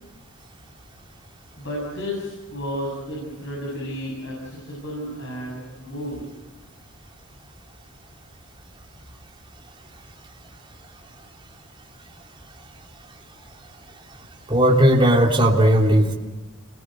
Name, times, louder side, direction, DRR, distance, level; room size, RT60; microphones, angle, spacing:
voice 1, 1.6-6.3, equal, 65° left, -3 dB, 7.9 m, -32 dB
voice 2, 14.5-16.1, equal, 25° right, -1 dB, 3.1 m, -16 dB
29.5 x 22.0 x 7.9 m, 1.1 s
head